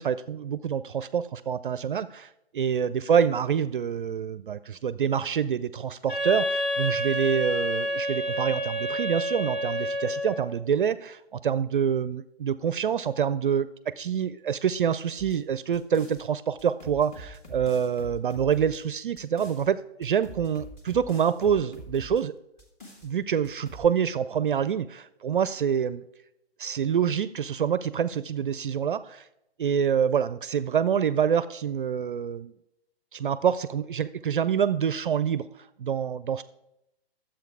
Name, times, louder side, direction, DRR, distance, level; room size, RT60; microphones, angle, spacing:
voice 1, 0.0-22.3 23.0-26.0 26.6-29.3 29.6-32.5 33.1-35.5 35.8-36.4, right 8 dB, 55° right, 15 dB, 0.5 m, -26 dB
Wind instrument woodwind instrument, 6.1-10.5, equal, 70° left, 3.4 m, -29 dB
sound 1, 15.2-16.2 16.6-19.7 20.0-22.2 22.6-23.1 23.4-23.9, right 1 dB, 20° left, 1.7 m, -45 dB
11.0 x 7.6 x 4.7 m, 0.85 s
figure-of-eight pair, 130°, 32 cm